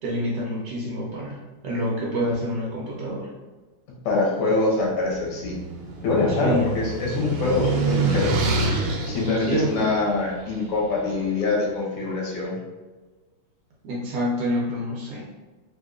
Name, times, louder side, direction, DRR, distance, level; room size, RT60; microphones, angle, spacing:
voice 1, 0.0-1.4 1.6-3.3 6.3-6.7 9.4-9.9 13.8-15.2, equal, 65° right, -4 dB, 1.2 m, -27 dB
voice 2, 4.1-5.5 6.0-8.3 9.1-12.6, left 3 dB, 85° left, -3 dB, 1.9 m, -24 dB
sound 1, 5.0-11.3, right 3 dB, 85° right, 1.5 m, -27 dB
4.4 x 2.6 x 2.4 m, 1.3 s
omnidirectional pair, 2.4 m